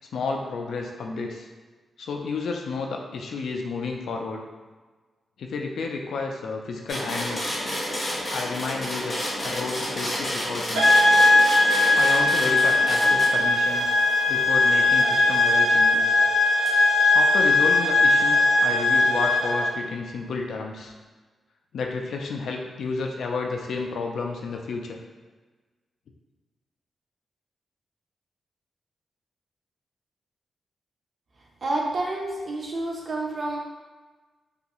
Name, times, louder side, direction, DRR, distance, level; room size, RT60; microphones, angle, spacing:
voice 1, 0.1-1.5 2.0-4.4 5.4-7.5 8.3-11.0 12.0-14.0 14.3-16.2 17.1-20.9 21.7-25.0, left 4 dB, 75° left, 2 dB, 0.3 m, -31 dB
sound 1, 6.9-15.5 16.7-16.8, equal, 25° left, 0.7 m, -31 dB
sound 2, 10.7-19.7, left 2 dB, 80° right, 0.6 m, -19 dB
voice 2, 31.6-33.6, right 2 dB, 35° right, -1 dB, 0.4 m, -29 dB
2.6 x 2.3 x 2.9 m, 1.3 s
wide cardioid pair, 175°, 0 cm